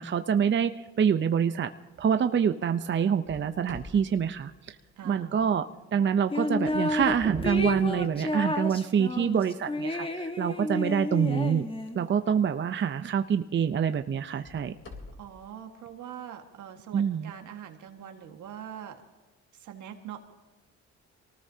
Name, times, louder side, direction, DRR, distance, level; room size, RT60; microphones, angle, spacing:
voice 1, 0.0-1.7 2.0-4.8 5.0-11.7 11.9-14.7 16.9-17.3, right 7 dB, 40° right, 9 dB, 0.7 m, -26 dB
sound 1, 3.2-5.2 6.4-8.3 9.0-9.1 9.8-9.9 12.5-12.7 13.2-13.3 14.2-15.4, left 3 dB, 45° left, 3.4 m, -48 dB
voice 2, 5.0-5.5 15.2-19.0 19.5-20.2, right 9 dB, 80° right, 5 dB, 1.8 m, -43 dB
sound 2, 6.3-7.1 7.4-12.1, left 2 dB, 20° left, 1.4 m, -31 dB
sound 3, 7.2-8.8, right 3 dB, 25° right, 1.6 m, -39 dB
24.5 x 19.0 x 2.8 m, 1.2 s
cardioid pair, 90°, 30 cm